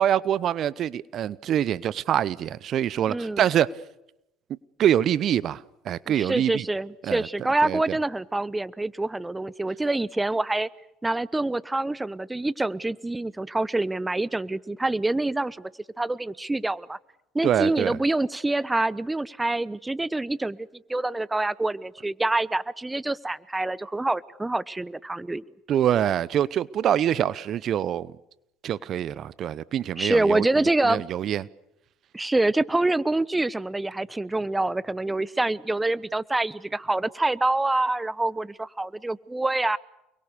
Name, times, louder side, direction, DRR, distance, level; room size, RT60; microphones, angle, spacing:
voice 1, 0.0-3.7 4.8-5.6 5.8-6.6 7.0-7.3 7.6-7.8 17.4-18.0 25.7-28.1 28.6-30.5 30.8-31.4, right 10 dB, 50° right, 20 dB, 0.9 m, -25 dB
voice 2, 3.1-3.4 6.1-10.7 11.0-15.7 16.0-17.0 17.3-25.4 30.0-31.0 32.1-39.8, right 2 dB, 15° right, 20 dB, 1.0 m, -26 dB
29.5 x 22.5 x 6.8 m, 0.87 s
hypercardioid pair, 65°, 0 cm